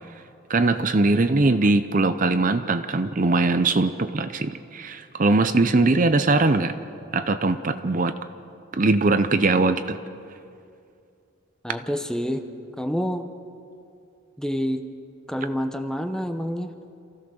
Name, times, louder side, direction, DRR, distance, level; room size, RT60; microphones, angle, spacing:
voice 1, 0.5-6.7 7.1-8.1 8.8-10.0, right 3 dB, 40° right, 10 dB, 0.6 m, -21 dB
voice 2, 1.1-1.7 11.6-12.5 12.8-13.3 14.4-14.9 15.3-16.7, equal, 5° left, 7 dB, 0.8 m, -28 dB
27.5 x 15.5 x 6.4 m, 2.5 s
head